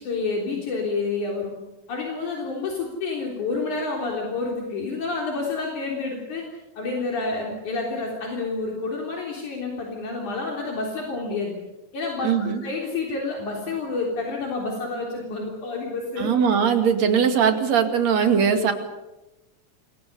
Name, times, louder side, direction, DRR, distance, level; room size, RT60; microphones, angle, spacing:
voice 1, 0.0-1.5 1.9-6.4 6.8-11.5 11.9-16.3 18.5-18.7, left 3 dB, 70° left, -1 dB, 5.1 m, -29 dB
voice 2, 12.2-12.6 16.2-18.7, right 7 dB, 60° right, 6 dB, 3.5 m, -20 dB
28.0 x 23.0 x 7.0 m, 1.0 s
omnidirectional pair, 3.6 m